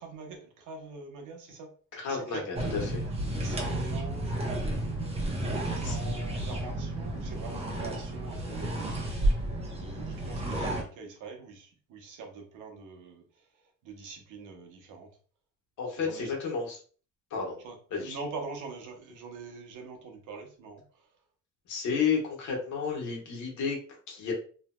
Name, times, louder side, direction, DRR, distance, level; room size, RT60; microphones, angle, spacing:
voice 1, 0.0-1.7 2.0-2.5 3.4-9.2 9.7-15.1 15.9-16.4 17.6-21.2, right 4 dB, 85° right, 0.9 m, -44 dB
voice 2, 2.0-3.0 5.8-6.0 15.8-16.8 17.3-17.6 17.9-18.2 21.7-23.8 24.1-24.3, left 5 dB, 75° left, 1.4 m, -31 dB
sound 1, 2.5-10.8, right 1 dB, 20° right, 0.9 m, -32 dB
3.2 x 2.8 x 2.2 m
cardioid pair, 90°, 30 cm